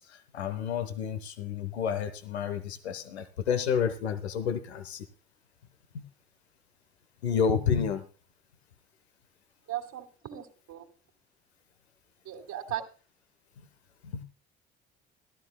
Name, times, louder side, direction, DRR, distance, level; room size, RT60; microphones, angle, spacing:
voice 1, 0.1-5.1 5.9-6.0 7.2-8.0 13.6-13.7 14.0-14.2, left 7 dB, 90° left, 9 dB, 1.0 m, -30 dB
voice 2, 9.7-10.9 12.2-12.8, right 11 dB, 60° right, 4 dB, 2.7 m, -37 dB
17.0 x 12.5 x 2.2 m, 0.35 s
hypercardioid pair, 50°, 31 cm